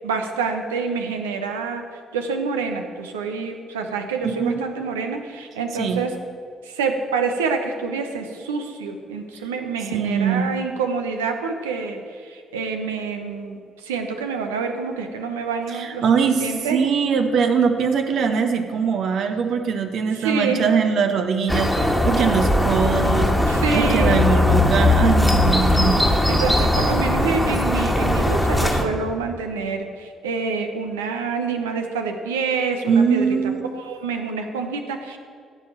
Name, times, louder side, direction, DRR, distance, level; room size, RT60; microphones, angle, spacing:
voice 1, 0.0-6.1 6.6-16.8 20.1-20.6 23.5-24.2 26.3-33.4 33.7-35.2, right 5 dB, 75° right, 5 dB, 1.0 m, -27 dB
voice 2, 4.2-4.7 5.8-6.0 9.9-10.5 15.8-16.4 16.7-23.3 23.7-26.0 32.9-33.6, right 6 dB, 55° right, 6 dB, 1.2 m, -21 dB
sound 1, 21.5-28.8, left 1 dB, 5° left, 1.7 m, -19 dB
15.5 x 5.7 x 7.5 m, 2.3 s
figure-of-eight pair, 45°, 0 cm